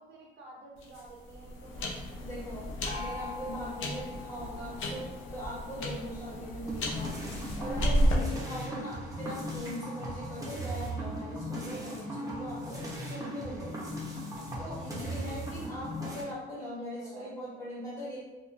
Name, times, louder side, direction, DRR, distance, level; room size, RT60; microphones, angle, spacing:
voice 1, 0.0-2.3 8.3-9.0 14.7-15.4 16.7-17.4, right 2 dB, 55° right, -3 dB, 0.5 m, -51 dB
sound 1, 0.8-8.1, equal, 85° left, 0.5 m, -33 dB
voice 2, 2.2-7.1 7.5-13.9 14.6-18.2, equal, 15° left, -9 dB, 1.3 m, -40 dB
Gong, 2.9-6.4, left 4 dB, 35° left, 0.5 m, -45 dB
sound 2, 6.7-16.2, equal, 15° right, 0.7 m, -38 dB
2.7 x 2.3 x 2.4 m, 1.1 s
cardioid pair, 90°, 20 cm